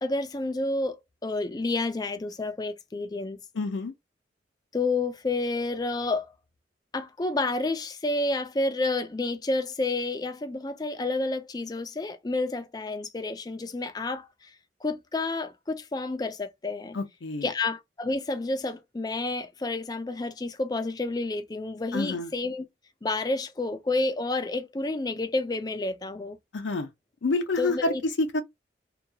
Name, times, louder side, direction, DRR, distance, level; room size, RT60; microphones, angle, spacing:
voice 1, 0.0-3.4 4.7-6.3 6.9-14.3 14.8-17.0 17.4-22.7 23.0-26.4 27.6-28.0, left 2 dB, 20° left, 0.4 m, -30 dB
voice 2, 3.5-3.9 16.9-17.5 21.9-22.3 26.5-26.9 27.2-28.4, left 2 dB, 85° left, 0.5 m, -28 dB
2.8 x 2.3 x 2.7 m
head